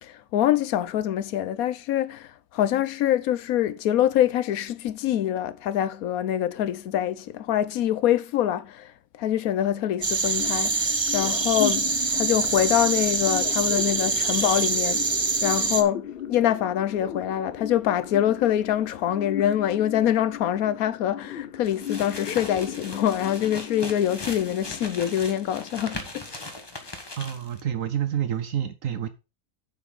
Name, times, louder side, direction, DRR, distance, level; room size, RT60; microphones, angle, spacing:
voice 1, 0.0-15.1 15.4-26.5, left 11 dB, 80° left, 1.2 m, -25 dB
sound 1, 10.0-15.8, right 4 dB, 25° right, 0.6 m, -25 dB
sound 2, 10.2-26.2, left 10 dB, 50° left, 0.8 m, -37 dB
sound 3, 21.6-27.6, left 2 dB, 20° left, 1.2 m, -39 dB
voice 2, 27.2-29.1, right 10 dB, 70° right, 1.1 m, -28 dB
9.4 x 7.1 x 3.8 m
omnidirectional pair, 1.5 m